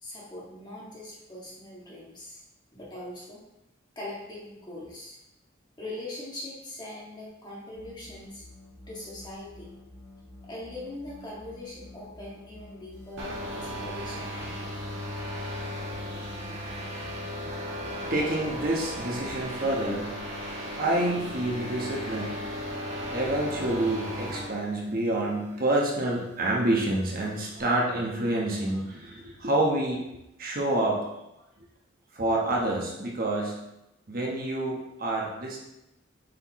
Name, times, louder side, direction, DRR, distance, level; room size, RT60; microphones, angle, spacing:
voice 1, 0.0-2.4 2.7-3.4 4.0-5.2 5.8-8.4 8.9-9.7 10.4-14.7, left 1 dB, 20° left, -5 dB, 1.8 m, -41 dB
sound 1, 7.8-19.4, left 2 dB, 75° left, 2.3 m, -49 dB
sound 2, 13.2-24.5, equal, 65° right, 2.1 m, -36 dB
voice 2, 15.8-30.0 30.4-31.1 32.1-33.6 34.1-35.6, right 1 dB, 50° right, -2 dB, 1.2 m, -29 dB
7.9 x 4.5 x 3.1 m, 0.90 s
head